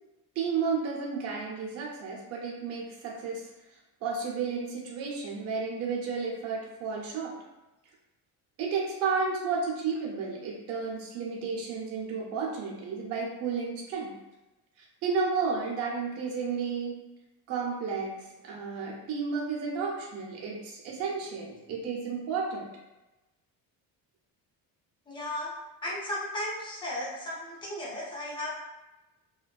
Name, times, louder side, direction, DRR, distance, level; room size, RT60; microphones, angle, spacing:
voice 1, 0.4-3.5 4.0-7.4 8.6-14.1 15.0-16.9 17.5-22.7, right 5 dB, 40° right, -3 dB, 0.5 m, -32 dB
voice 2, 25.1-25.5 25.8-28.5, left 1 dB, 15° left, -5 dB, 0.4 m, -35 dB
2.5 x 2.2 x 2.2 m, 1.0 s
cardioid pair, 175°, 37 cm